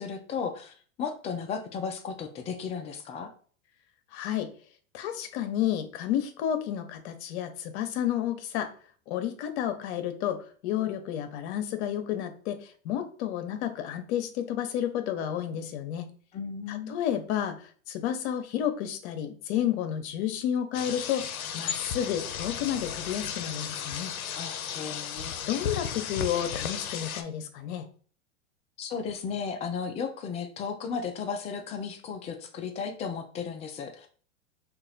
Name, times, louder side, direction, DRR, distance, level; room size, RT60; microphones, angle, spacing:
voice 1, 0.0-3.3 16.3-16.9 24.3-25.3 28.8-34.1, left 6 dB, 15° left, 5 dB, 0.3 m, -35 dB
voice 2, 4.1-4.5 4.9-8.7 9.1-16.1 16.7-17.6 17.9-21.3 21.5-24.1 25.5-27.8, left 10 dB, 55° left, 8 dB, 0.8 m, -31 dB
sound 1, 20.7-27.2, left 8 dB, 90° left, 0.6 m, -34 dB
2.9 x 2.5 x 4.0 m, 0.43 s
hypercardioid pair, 110°, 41 cm